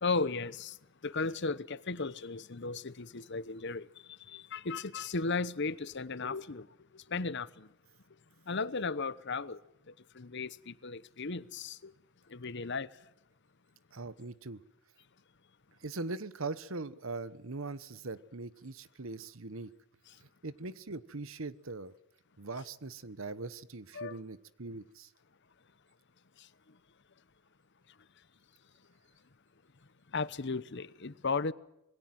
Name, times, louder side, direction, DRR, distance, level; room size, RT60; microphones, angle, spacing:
voice 1, 0.0-0.8 1.0-6.7 6.9-7.7 8.5-9.6 9.9-11.9 12.3-12.9 23.9-24.2 26.4-26.5 30.1-31.5, left 4 dB, 55° left, 0.9 m, -35 dB
voice 2, 13.9-14.6 15.8-19.7 20.4-21.9 22.4-25.1, right 3 dB, 65° right, 1.2 m, -41 dB
27.0 x 21.0 x 7.8 m
head